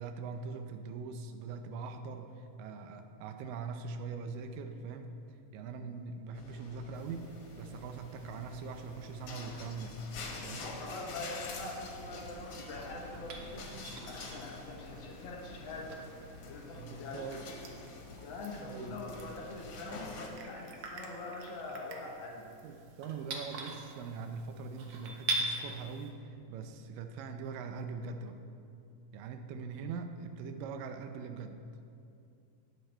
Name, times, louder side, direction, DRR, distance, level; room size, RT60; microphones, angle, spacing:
voice 1, 0.0-5.2 5.5-10.0 10.4-10.7 11.2-11.3 16.7-17.5 18.6-19.0 22.6-28.4 29.1-31.6, right 5 dB, 85° right, 7 dB, 2.3 m, -42 dB
sound 1, 6.3-20.3, left 3 dB, 55° left, 1.9 m, -47 dB
sound 2, 6.9-26.1, right 2 dB, 65° right, 1.4 m, -45 dB
voice 2, 10.5-13.7 14.0-16.0 16.5-17.6 18.2-22.5, left 2 dB, 90° left, -1 dB, 1.0 m, -44 dB
18.0 x 6.6 x 4.4 m, 2.5 s
omnidirectional pair, 3.9 m